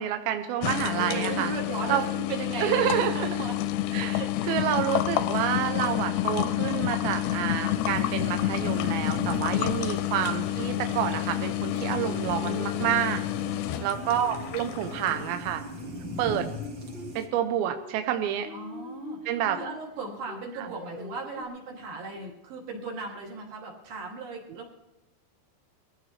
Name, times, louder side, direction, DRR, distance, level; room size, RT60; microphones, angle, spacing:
voice 1, 0.0-1.5 1.9-2.0 2.6-3.3 3.9-4.2 4.5-13.2 13.8-15.6 16.2-16.4 17.2-18.5 19.3-19.6 20.6-20.7, right 11 dB, 80° right, 6 dB, 2.3 m, -28 dB
sound 1, 0.6-15.3, left 14 dB, 80° left, 2.7 m, -29 dB
voice 2, 1.0-3.6 4.1-4.5 9.8-10.1 13.3-14.1 16.2-16.6 18.5-24.7, right 3 dB, 55° right, -1 dB, 4.1 m, -37 dB
sound 2, 7.7-17.3, left 1 dB, 40° right, 1.8 m, -40 dB
Singing, 11.6-15.4 15.8-19.8 20.3-21.4, left 1 dB, 30° left, 1.4 m, -44 dB
22.5 x 15.0 x 3.2 m, 1.0 s
omnidirectional pair, 5.0 m